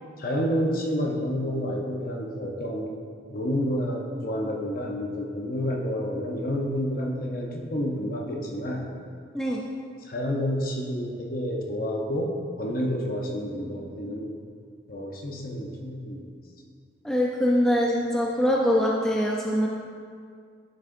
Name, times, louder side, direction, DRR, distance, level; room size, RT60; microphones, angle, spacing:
voice 1, 0.2-2.9 3.3-9.0 10.0-14.3 14.9-16.3, equal, 50° left, 0 dB, 0.8 m, -29 dB
voice 2, 17.0-19.7, equal, 5° left, -3 dB, 0.4 m, -23 dB
11.5 x 6.4 x 2.6 m, 2.2 s
head